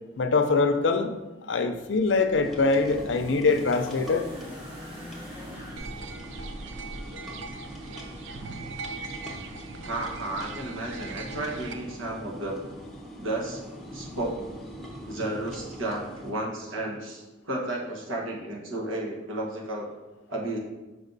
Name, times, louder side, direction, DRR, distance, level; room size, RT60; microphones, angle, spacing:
voice 1, 0.2-1.1 1.5-4.3, left 3 dB, 65° left, 7 dB, 0.6 m, -23 dB
sound 1, 1.8-7.0 8.1-8.2, equal, 25° right, 2.2 m, -45 dB
sound 2, 2.4-16.3, equal, ahead, 0.8 m, -42 dB
sound 3, 5.8-11.7, right 3 dB, 70° right, 0.5 m, -40 dB
voice 2, 9.8-12.6 13.2-13.6 13.9-14.4 15.1-19.9 20.3-20.6, right 1 dB, 85° right, -1 dB, 1.4 m, -33 dB
5.5 x 5.3 x 4.0 m, 1.1 s
head